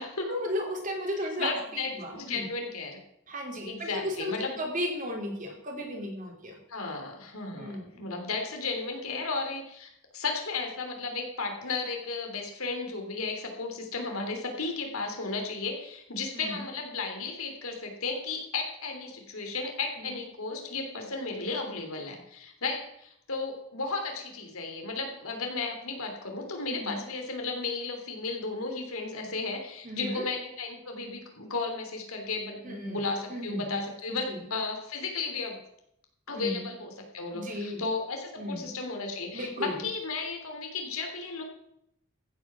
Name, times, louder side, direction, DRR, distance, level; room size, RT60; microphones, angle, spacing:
voice 1, 0.3-2.4 3.3-6.5 7.6-8.0 16.3-16.6 20.0-20.2 26.7-27.0 29.8-30.2 32.6-33.0 33.3-33.8 34.3-34.4 36.3-36.6 37.3-37.8 38.4-38.7 39.3-39.8, equal, 35° right, 2 dB, 3.1 m, -35 dB
voice 2, 1.2-3.0 3.6-4.6 6.7-35.6 36.3-41.4, left 3 dB, 75° left, 3 dB, 3.1 m, -34 dB
15.0 x 8.9 x 6.1 m, 0.76 s
head